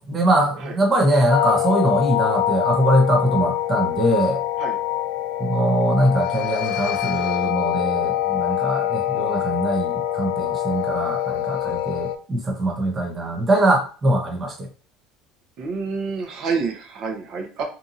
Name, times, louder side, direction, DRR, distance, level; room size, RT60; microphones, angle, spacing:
voice 1, 0.0-4.4 5.4-14.7, right 1 dB, 25° right, 1 dB, 0.7 m, -22 dB
sound 1, 1.3-12.2, left 12 dB, 75° left, 0.3 m, -24 dB
voice 2, 15.6-17.6, right 5 dB, 55° right, 2 dB, 0.8 m, -28 dB
2.7 x 2.6 x 2.5 m, 0.39 s
supercardioid pair, 110°, 0 cm